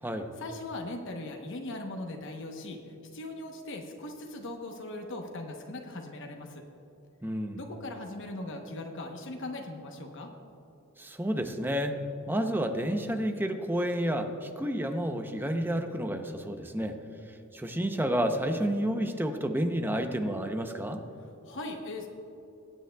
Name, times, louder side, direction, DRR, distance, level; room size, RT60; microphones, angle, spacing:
voice 1, 0.4-2.8 3.1-6.6 7.5-10.3 21.4-22.1, left 2 dB, 65° left, 2 dB, 0.9 m, -39 dB
voice 2, 7.2-7.6 11.0-12.0 12.3-17.0 17.5-21.0, equal, 10° right, 6 dB, 0.6 m, -30 dB
19.5 x 9.1 x 2.3 m, 2.9 s
head